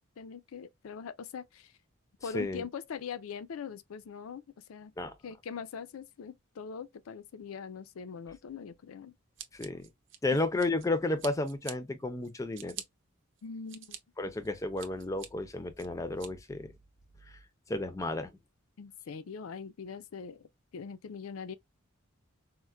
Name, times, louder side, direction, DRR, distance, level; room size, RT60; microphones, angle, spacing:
voice 1, 0.0-1.7 2.2-4.9 5.2-9.1 10.3-10.4 13.4-14.0 18.8-21.6, left 6 dB, 80° left, 0.4 m, -42 dB
Scissors, 9.4-10.9 11.2-11.7 12.2-12.8 13.4-14.0 14.4-15.3 15.8-16.3, right 10 dB, 60° right, 0.6 m, -45 dB
voice 2, 9.5-9.9 10.2-12.8 14.2-16.7 17.7-18.3, left 2 dB, 15° left, 0.4 m, -32 dB
4.3 x 2.1 x 2.3 m
head